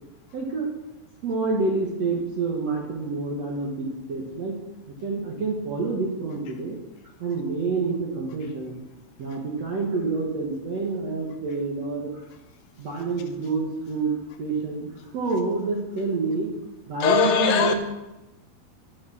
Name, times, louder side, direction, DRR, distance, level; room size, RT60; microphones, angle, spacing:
voice 1, 0.3-0.7 1.2-4.6 4.9-6.8 7.2-8.7 9.2-12.3 12.8-14.1 14.4-16.5 16.9-17.7, right 3 dB, 60° right, -1 dB, 1.7 m, -28 dB
voice 2, 17.0-17.7, left 7 dB, 80° left, 5 dB, 2.8 m, -20 dB
9.7 x 9.5 x 6.2 m, 1.0 s
omnidirectional pair, 5.0 m